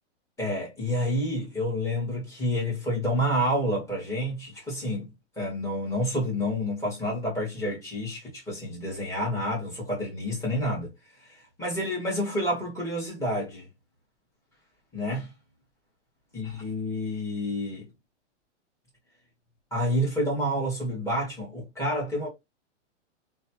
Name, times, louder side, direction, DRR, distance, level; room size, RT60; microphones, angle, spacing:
voice 1, 0.4-5.1 5.4-10.9 11.2-13.7 14.9-15.3 16.3-17.9 19.7-22.3, equal, 10° left, 1.6 m, -29 dB
3.1 x 2.4 x 2.9 m
hypercardioid pair, 140°, 36 cm